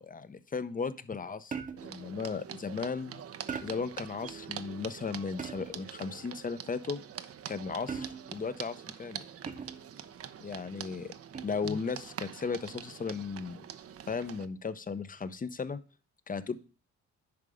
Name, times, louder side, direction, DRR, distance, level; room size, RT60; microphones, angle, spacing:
voice 1, 0.0-1.6 1.8-3.2 3.6-7.0 7.5-9.2 10.4-11.1 11.4-13.6 14.1-15.8 16.3-16.6, left 5 dB, 30° left, 13 dB, 0.7 m, -36 dB
sound 1, 1.5-2.0 3.5-4.0 5.4-5.9 7.9-8.4 9.5-9.9 11.3-11.7, right 5 dB, 25° right, 0.9 m, -40 dB
sound 2, 1.8-14.5, right 9 dB, 50° right, 0.7 m, -45 dB
10.5 x 3.7 x 5.0 m, 0.35 s
cardioid pair, 90°, 30 cm